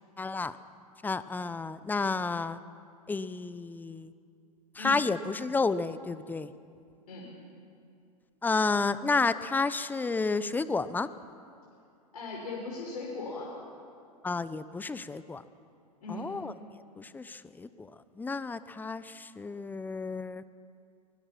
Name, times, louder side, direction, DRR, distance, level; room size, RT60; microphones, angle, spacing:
voice 1, 0.2-0.6 1.0-2.6 3.1-4.1 4.8-6.5 8.4-11.1 14.2-15.4 16.1-16.5 17.0-17.9 18.2-20.4, left 4 dB, 10° left, 15 dB, 0.8 m, -31 dB
voice 2, 12.1-13.6 16.0-16.3, left 3 dB, 70° left, -3 dB, 5.2 m, -38 dB
24.0 x 21.0 x 5.9 m, 2.4 s
figure-of-eight pair, 95°, 20 cm